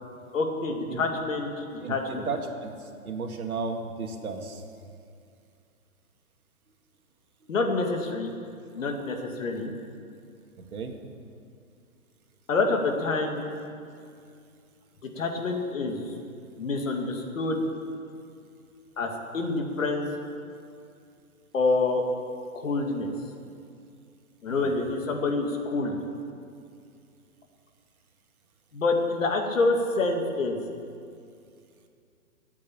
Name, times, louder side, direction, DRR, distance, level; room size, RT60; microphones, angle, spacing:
voice 1, 0.3-2.3 7.5-8.3 8.7-9.7 12.5-13.4 15.2-16.1 16.6-17.7 19.0-20.1 21.5-22.0 22.5-23.1 24.4-26.0 28.7-30.6, left 3 dB, 60° left, 3 dB, 2.3 m, -27 dB
voice 2, 1.8-4.6 10.6-11.0 24.5-24.8, right 4 dB, 75° right, 3 dB, 2.2 m, -34 dB
16.0 x 8.5 x 8.6 m, 2.4 s
hypercardioid pair, 175°, 44 cm